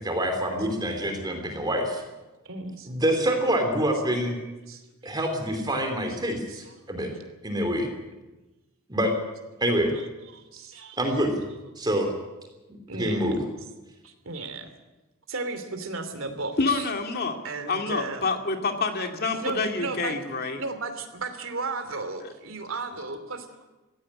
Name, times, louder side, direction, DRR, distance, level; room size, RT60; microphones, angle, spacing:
voice 1, 0.0-2.0 2.9-4.4 5.0-7.1 7.4-7.9 8.9-9.1 9.6-9.9 11.0-11.4 11.8-12.1 12.9-13.4, equal, 20° right, 4 dB, 3.1 m, -26 dB
voice 2, 2.5-2.9 4.7-5.2 6.5-6.6 7.1-7.2 9.9-10.1 10.3-11.0 12.9-13.3 14.0-14.7 15.3-16.9 17.4-18.3 19.4-20.1 20.5-23.7, right 3 dB, 70° right, 7 dB, 2.9 m, -35 dB
voice 3, 16.6-17.4 17.7-20.6 22.2-22.3, left 3 dB, 45° left, 4 dB, 2.3 m, -27 dB
17.0 x 16.0 x 9.9 m, 1.1 s
head